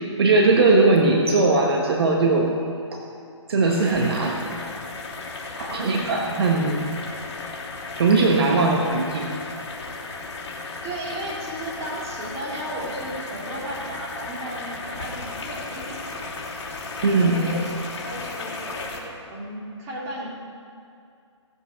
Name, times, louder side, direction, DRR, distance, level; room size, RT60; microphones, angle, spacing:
voice 1, 0.2-2.5 2.9-3.0 3.5-4.4 5.6-6.8 8.0-9.3 17.0-17.5, right 3 dB, 55° right, 0 dB, 1.5 m, -19 dB
sound 1, 3.6-19.0, left 3 dB, 60° left, 3.2 m, -35 dB
voice 2, 5.6-6.0 10.8-16.6 17.1-20.3, right 1 dB, 20° right, -4 dB, 2.5 m, -35 dB
17.5 x 7.9 x 4.8 m, 2.4 s
hypercardioid pair, 150°, 16 cm